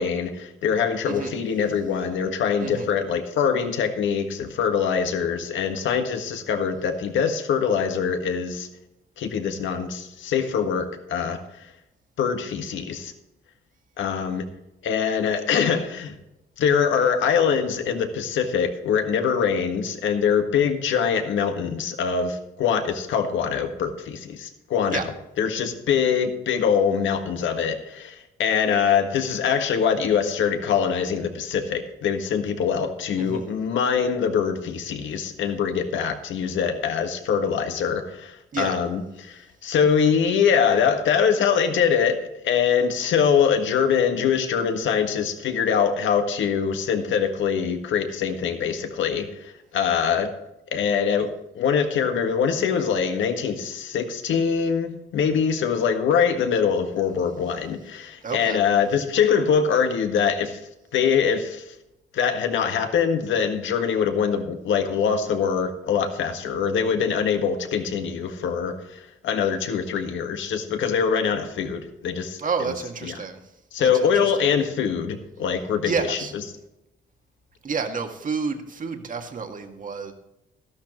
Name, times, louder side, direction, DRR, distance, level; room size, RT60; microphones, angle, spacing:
voice 1, 0.0-8.7 9.2-11.7 12.2-13.1 14.0-14.4 14.8-16.1 16.6-25.0 25.4-42.2 42.4-50.3 50.7-60.6 60.9-61.7 62.1-72.7 73.0-73.1 73.7-76.2, left 7 dB, 75° left, 6 dB, 1.6 m, -23 dB
voice 2, 1.1-1.4 2.6-2.9 24.9-25.0 33.2-33.6 38.5-38.8 58.2-58.6 72.4-73.4 73.8-74.5 75.8-76.3 77.6-80.1, right 5 dB, 40° right, 4 dB, 1.9 m, -30 dB
13.0 x 11.5 x 3.1 m, 0.89 s
cardioid pair, 90°, 20 cm